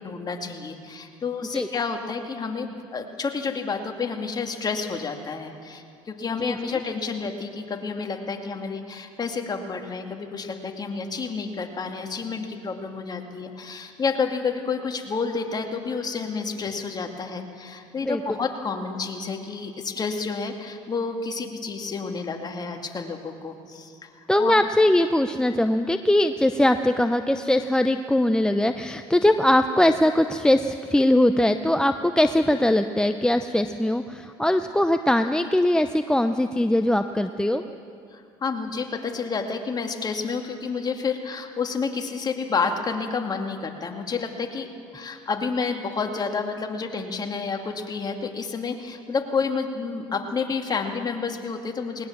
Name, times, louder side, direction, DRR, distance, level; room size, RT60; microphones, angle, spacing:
voice 1, 0.0-24.1 24.4-24.6 38.1-52.1, left 5 dB, 30° left, 4 dB, 2.3 m, -30 dB
voice 2, 6.4-6.8 18.0-18.2 24.3-37.6, left 1 dB, 5° left, 8 dB, 0.7 m, -21 dB
19.5 x 19.5 x 7.3 m, 2.5 s
supercardioid pair, 85°, 13 cm